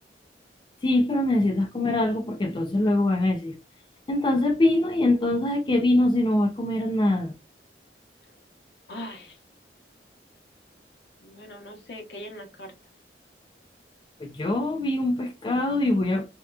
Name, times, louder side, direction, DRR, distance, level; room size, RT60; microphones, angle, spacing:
voice 1, 0.8-3.6 4.1-7.3 14.2-16.3, left 1 dB, 25° left, 0.4 m, -23 dB
voice 2, 8.9-9.4 11.2-12.7, left 1 dB, 70° left, 0.9 m, -40 dB
2.7 x 2.2 x 2.3 m
head